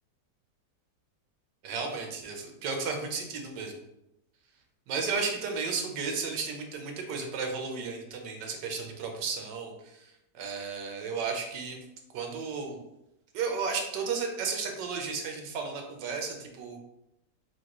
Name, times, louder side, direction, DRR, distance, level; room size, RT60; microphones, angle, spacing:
voice 1, 1.6-3.7 4.9-10.0 10.3-11.8 12.1-12.8 13.3-16.8, right 5 dB, 85° right, 3 dB, 1.4 m, -33 dB
6.0 x 2.5 x 2.9 m, 0.87 s
omnidirectional pair, 1.9 m